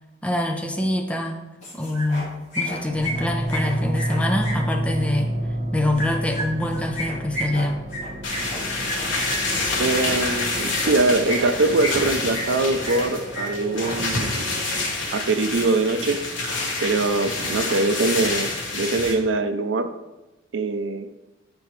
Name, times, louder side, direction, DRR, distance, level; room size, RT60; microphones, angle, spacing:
voice 1, 0.2-1.4 1.7-5.3 5.7-7.8, left 1 dB, 5° left, 3 dB, 0.5 m, -25 dB
sound 1, 1.6-2.3 2.5-4.5 5.9-9.4 10.7-10.9 11.2-12.0 12.3-13.1 13.3-13.4 13.7-13.9, left 1 dB, 35° left, 2.2 m, -31 dB
sound 2, 2.9-14.9, equal, 50° right, 0.9 m, -31 dB
sound 3, 8.2-19.1, left 2 dB, 75° left, 1.3 m, -27 dB
voice 2, 9.8-14.6 15.1-16.2 16.8-19.9 20.5-21.1, right 3 dB, 75° right, 9 dB, 0.5 m, -23 dB
8.4 x 4.8 x 3.1 m, 1.0 s
head